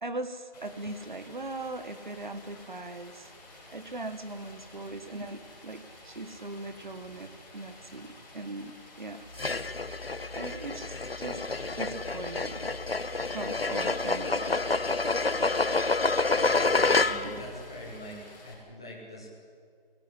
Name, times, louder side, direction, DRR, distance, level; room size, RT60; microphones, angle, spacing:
voice 1, 0.0-3.3 3.7-9.3 10.3-11.4 11.8-12.7 13.3-14.6 17.2-17.4, right 2 dB, 55° right, 10 dB, 1.5 m, -40 dB
Stream, 0.5-18.5, left 2 dB, 20° left, 7.5 m, -51 dB
sound 1, 9.3-17.4, left 3 dB, 90° left, 1.3 m, -28 dB
voice 2, 16.4-18.2 18.4-19.3, equal, 5° left, -3 dB, 1.0 m, -43 dB
25.0 x 18.5 x 9.9 m, 2.3 s
figure-of-eight pair, 170°, 29 cm